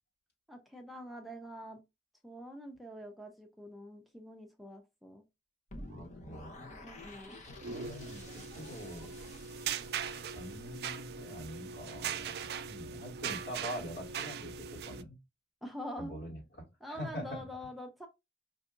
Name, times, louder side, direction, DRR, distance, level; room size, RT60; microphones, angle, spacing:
voice 1, 0.5-1.8 2.2-5.2 6.8-7.4 15.6-16.1 16.8-18.1, equal, ahead, 0.5 m, -45 dB
sound 1, 5.7-11.7, left 1 dB, 40° left, 0.8 m, -51 dB
voice 2, 5.9-6.6 7.5-9.1 9.5-9.8 10.2-15.2 16.0-17.4, equal, 75° left, 2.0 m, -45 dB
sound 2, 7.5-15.0, right 7 dB, 60° right, 0.3 m, -40 dB
5.1 x 2.7 x 2.4 m
head